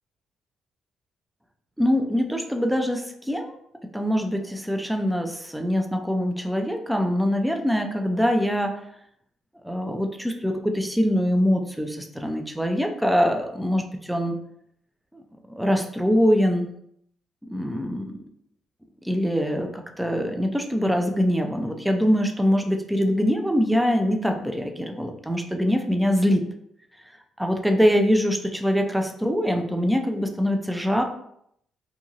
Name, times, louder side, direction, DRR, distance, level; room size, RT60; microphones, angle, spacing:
voice 1, 1.8-3.5 3.9-8.7 9.6-14.4 15.1-15.2 15.6-16.7 17.5-18.1 19.0-26.4 27.4-31.0, equal, 5° right, 4 dB, 0.4 m, -23 dB
2.8 x 2.6 x 2.4 m, 0.71 s
cardioid pair, 90°, 0 cm